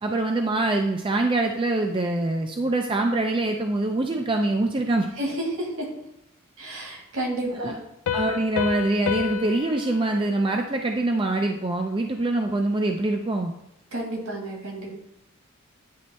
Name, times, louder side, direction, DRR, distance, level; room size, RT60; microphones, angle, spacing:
voice 1, 0.0-5.1 7.5-7.8 8.1-13.5, right 2 dB, 25° right, 3 dB, 0.4 m, -24 dB
voice 2, 5.2-5.9 6.6-7.8 13.9-14.9, right 1 dB, 70° right, -1 dB, 2.0 m, -30 dB
Piano, 8.1-11.5, left 11 dB, 75° left, 0.3 m, -31 dB
9.3 x 3.2 x 4.2 m, 0.84 s
head